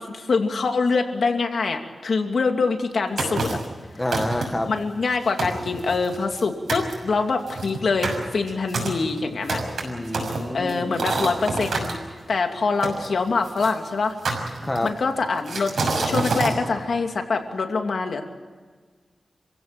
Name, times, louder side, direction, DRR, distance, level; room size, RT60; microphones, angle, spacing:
voice 1, 0.0-3.6 4.7-9.6 10.5-12.0 12.3-14.1 14.8-15.7 16.1-18.2, left 4 dB, 70° left, 4 dB, 2.7 m, -24 dB
sound 1, 3.2-3.7 4.1-4.7 5.1-5.2 5.4-6.4 6.7-6.9 7.5-11.9 12.8-13.7 14.2-15.0 15.5-16.6, right 3 dB, 75° right, 6.4 m, -27 dB
voice 2, 3.9-4.7 9.8-10.9 14.6-14.9, left 1 dB, 15° left, 5 dB, 1.9 m, -28 dB
29.0 x 16.0 x 8.9 m, 1.5 s
wide cardioid pair, 125°, 0 cm